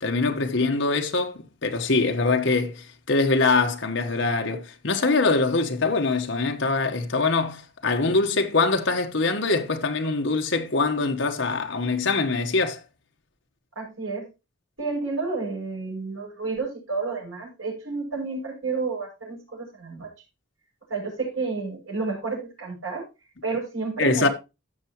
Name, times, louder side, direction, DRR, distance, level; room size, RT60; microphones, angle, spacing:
voice 1, 0.0-12.8 24.0-24.3, left 3 dB, 65° left, 1.3 m, -23 dB
voice 2, 13.7-14.3 14.8-20.1 20.9-23.0 23.4-24.3, right 4 dB, 80° right, 6.4 m, -30 dB
15.5 x 5.9 x 3.0 m
head